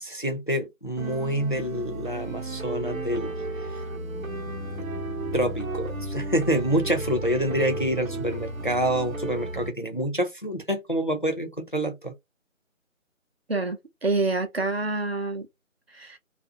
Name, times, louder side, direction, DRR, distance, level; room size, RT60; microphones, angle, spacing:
voice 1, 0.0-3.3 4.8-4.9 5.3-12.1, equal, 40° left, 0.4 m, -27 dB
sound 1, 1.0-9.7, right 3 dB, 80° right, 0.7 m, -34 dB
sound 2, 3.8-9.8, left 8 dB, 85° left, 0.8 m, -43 dB
voice 2, 13.5-15.5 15.9-16.2, right 3 dB, 50° right, 0.6 m, -27 dB
2.4 x 2.0 x 2.5 m
figure-of-eight pair, 160°, 41 cm